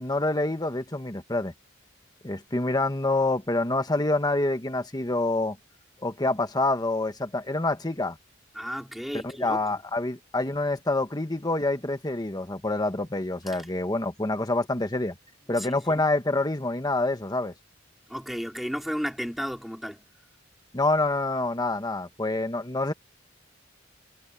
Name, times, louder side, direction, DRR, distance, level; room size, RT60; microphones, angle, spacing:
voice 1, 0.0-1.5 2.2-5.6 6.0-8.2 9.2-15.1 15.5-17.5 20.7-22.9, left 2 dB, 20° left, 1.4 m, -27 dB
voice 2, 8.5-9.8 13.5-13.7 15.6-15.8 18.1-20.0, equal, ahead, 4.4 m, -33 dB
head